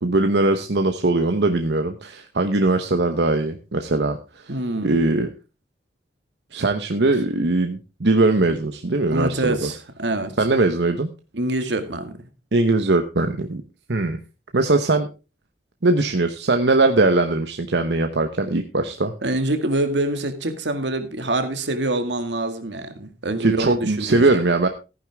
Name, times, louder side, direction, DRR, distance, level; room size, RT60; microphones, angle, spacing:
voice 1, 0.0-4.2 4.8-5.3 6.5-9.7 10.4-11.1 12.5-13.6 13.9-14.2 14.5-15.1 15.8-19.1 23.4-24.7, right 2 dB, 75° right, 6 dB, 1.0 m, -20 dB
voice 2, 4.5-5.0 9.1-10.3 11.3-12.2 19.2-24.4, right 1 dB, 90° right, 8 dB, 2.0 m, -25 dB
14.5 x 10.0 x 3.5 m, 0.30 s
head